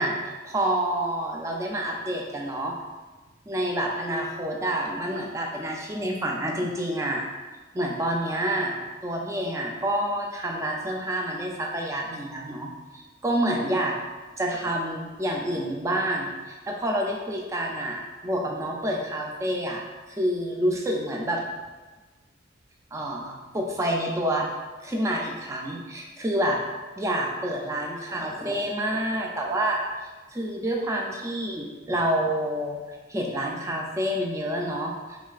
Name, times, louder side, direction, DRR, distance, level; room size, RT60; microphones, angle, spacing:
voice 1, 0.0-2.7 3.5-7.2 7.7-8.8 9.0-13.9 14.4-19.8 20.1-21.4 22.9-24.5 24.8-26.6 27.0-29.8 30.3-35.2, right 1 dB, 15° right, 0 dB, 0.3 m, -28 dB
3.6 x 3.1 x 2.4 m, 1.3 s
head